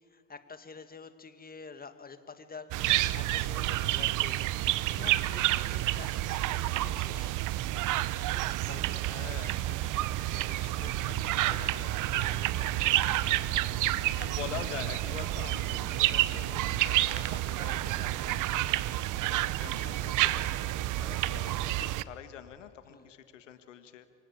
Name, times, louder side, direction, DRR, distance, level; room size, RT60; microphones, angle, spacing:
voice 1, 0.1-4.5 4.9-7.4 8.1-9.6 19.7-20.0 21.1-21.6 22.9-23.1, left 4 dB, 25° left, 10 dB, 2.2 m, -48 dB
sound 1, 2.7-22.0, right 16 dB, 55° right, 1.0 m, -29 dB
voice 2, 9.0-18.7 19.1-19.3 19.6-24.1, left 10 dB, 90° left, 10 dB, 1.6 m, -46 dB
sound 2, 10.8-16.9, left 9 dB, 50° left, 2.2 m, -51 dB
27.5 x 25.0 x 8.6 m, 2.6 s
hypercardioid pair, 70°, 36 cm